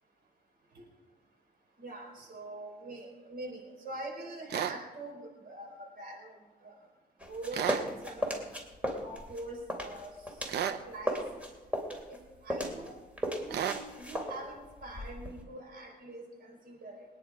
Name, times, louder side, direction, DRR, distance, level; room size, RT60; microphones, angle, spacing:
voice 1, 1.8-6.4 6.6-6.7 7.3-8.4 9.0-10.2 10.7-11.2 12.1-12.2 12.4-13.0 13.4-17.1, right 2 dB, 65° right, 0 dB, 4.9 m, -44 dB
sound 1, 4.5-4.8 7.5-7.9 10.5-10.8 13.5-13.8, right 9 dB, 90° right, 0.9 m, -32 dB
sound 2, 7.2-10.7 11.0-15.4, equal, 10° right, 2.9 m, -36 dB
23.0 x 9.9 x 4.9 m, 1.3 s
cardioid pair, 120°, 17 cm